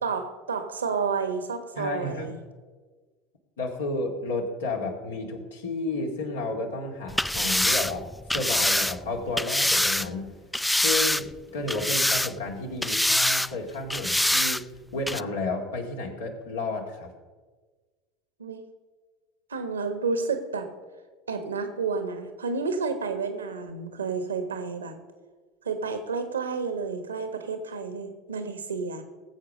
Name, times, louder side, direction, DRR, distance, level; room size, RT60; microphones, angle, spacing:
voice 1, 0.0-2.4 18.4-18.6 19.5-20.7 21.3-25.0 25.6-29.0, right 4 dB, 85° right, 8 dB, 1.3 m, -30 dB
voice 2, 1.8-2.3 3.6-8.1 8.3-10.3 10.8-14.7 14.9-17.1, left 2 dB, 80° left, 1 dB, 2.1 m, -32 dB
sound 1, 7.1-10.1 10.5-11.4 11.7-12.5 12.8-13.5 13.9-14.6 15.1-15.2, left 1 dB, 5° left, 0.3 m, -24 dB
19.0 x 7.7 x 5.3 m, 1.4 s
hypercardioid pair, 75°, 0 cm